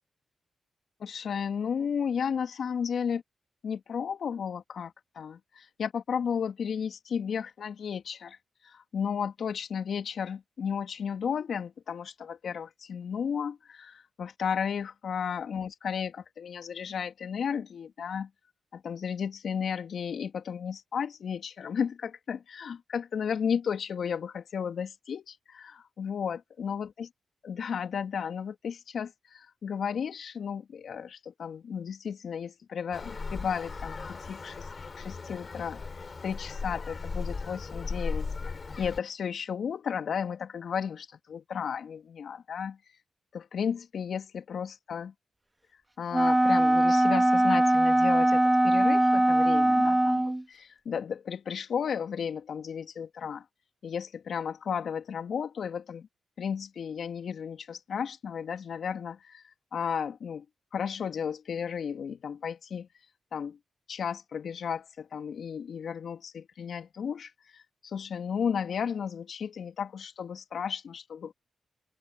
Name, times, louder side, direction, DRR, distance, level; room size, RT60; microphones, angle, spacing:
voice 1, 1.0-3.2 3.6-8.4 8.6-18.3 18.7-27.1 27.4-34.7 35.0-35.8 36.2-42.8 43.3-45.1 46.0-53.4 53.8-56.1 56.4-59.4 59.7-60.4 60.7-62.9 63.3-63.6 63.9-71.3, left 7 dB, 70° left, 2.9 m, -34 dB
Traffic noise roadway noise, 32.9-39.0, left 4 dB, 45° left, 3.7 m, -37 dB
Wind instrument woodwind instrument, 46.1-50.4, right 1 dB, 15° right, 1.8 m, -22 dB
open air
supercardioid pair, 45°, 0 cm